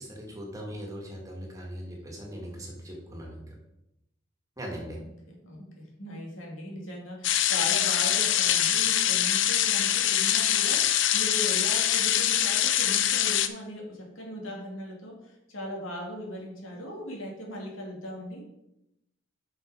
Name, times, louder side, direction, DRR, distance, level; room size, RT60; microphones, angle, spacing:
voice 1, 0.0-3.4 4.6-5.0, equal, 15° right, -1 dB, 1.8 m, -39 dB
voice 2, 4.8-18.4, equal, 85° left, -2 dB, 2.7 m, -39 dB
sound 1, 7.2-13.5, left 11 dB, 65° left, 0.6 m, -24 dB
8.0 x 5.6 x 5.1 m, 0.87 s
head